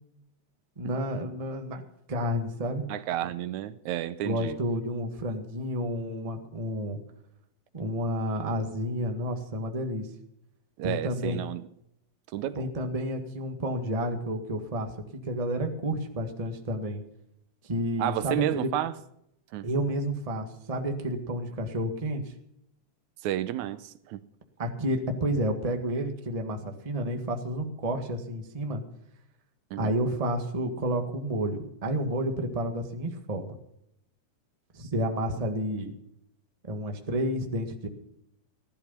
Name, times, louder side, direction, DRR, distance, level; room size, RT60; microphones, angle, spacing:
voice 1, 0.8-1.8 2.1-2.8 4.2-7.0 7.7-10.1 10.8-11.4 12.5-14.9 15.2-17.0 17.6-18.7 19.6-22.2 24.6-28.8 29.8-33.5 34.7-35.9 36.6-37.9, equal, 20° right, 1.1 m, -30 dB
voice 2, 2.9-4.6 10.8-11.6 12.3-12.7 18.0-18.9 19.5-19.7 23.2-24.2 29.7-29.9, right 13 dB, 80° right, 2.0 m, -31 dB
16.0 x 12.0 x 5.7 m
omnidirectional pair, 3.4 m